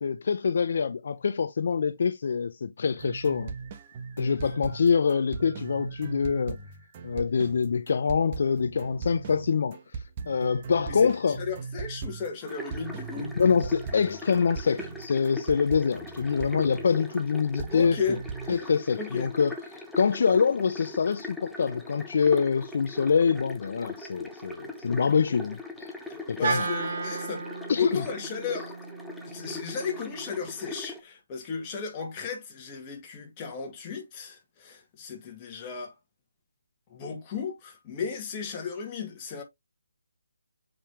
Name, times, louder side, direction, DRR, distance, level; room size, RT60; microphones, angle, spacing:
voice 1, 0.0-3.5 4.2-6.6 7.0-11.4 13.4-18.0 18.5-25.9 26.3-26.7 27.7-28.0, left 6 dB, 55° left, 0.5 m, -25 dB
sound 1, 3.0-17.2 17.6-18.7, right 5 dB, 30° right, 1.1 m, -39 dB
voice 2, 11.4-13.3 17.7-18.2 19.0-19.3 26.4-27.5 27.7-28.7 29.2-35.9 36.9-39.4, left 6 dB, 20° left, 2.2 m, -34 dB
sound 2, 12.5-31.0, left 2 dB, ahead, 0.9 m, -41 dB
Wind instrument woodwind instrument, 26.4-30.7, right 4 dB, 50° right, 1.7 m, -34 dB
7.2 x 5.1 x 3.0 m
figure-of-eight pair, 155°, 0 cm